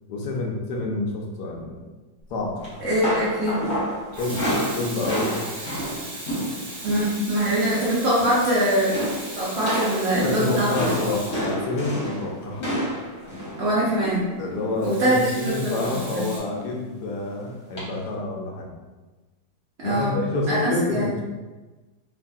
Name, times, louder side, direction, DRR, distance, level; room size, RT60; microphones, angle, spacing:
voice 1, 0.1-1.8 2.3-2.6 4.2-4.4 4.7-5.3 10.2-12.7 14.4-18.7 19.8-21.1, left 2 dB, 85° left, -1 dB, 1.2 m, -28 dB
Water tap faucet / Sink (filling or washing), 2.4-2.6 3.9-12.1 14.8-16.4, right 1 dB, 70° right, 1.3 m, -38 dB
sound 1, 2.6-7.2 7.4-7.8 8.0-8.5 8.9-14.9 15.8-16.2 16.5-16.7 17.8-17.9, equal, 55° left, 1.5 m, -30 dB
voice 2, 2.8-3.6 6.8-9.1 9.3-10.7 13.6-14.2 14.8-16.3 19.8-20.1 20.5-21.1, right 1 dB, 55° right, -8 dB, 0.8 m, -23 dB
3.2 x 2.6 x 2.3 m, 1.2 s
omnidirectional pair, 1.7 m